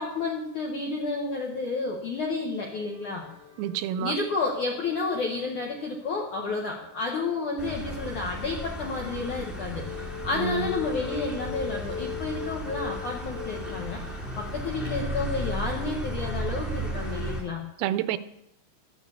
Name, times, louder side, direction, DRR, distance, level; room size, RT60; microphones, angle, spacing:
voice 1, 0.0-3.2 4.0-14.0 14.4-17.6, left 3 dB, 65° left, 1.9 m, -31 dB
sound 1, 2.7-14.9, left 8 dB, 85° left, 4.4 m, -42 dB
voice 2, 3.6-4.1 10.3-10.8 17.8-18.2, right 10 dB, 85° right, 3.3 m, -29 dB
sound 2, 7.6-17.4, right 1 dB, ahead, 1.7 m, -35 dB
12.5 x 9.6 x 8.3 m
omnidirectional pair, 5.9 m